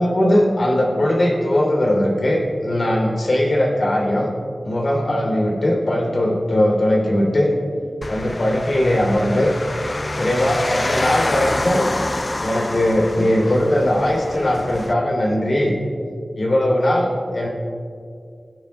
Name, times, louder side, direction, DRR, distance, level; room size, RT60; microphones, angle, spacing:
voice 1, 0.0-4.3 4.6-7.5 8.1-9.5 10.2-11.9 12.4-15.7 16.3-17.5, left 1 dB, 55° left, -2 dB, 3.4 m, -19 dB
sound 1, 8.0-14.9, left 2 dB, 35° left, 0.4 m, -27 dB
23.0 x 10.5 x 2.4 m, 2.3 s
wide cardioid pair, 90°, 0 cm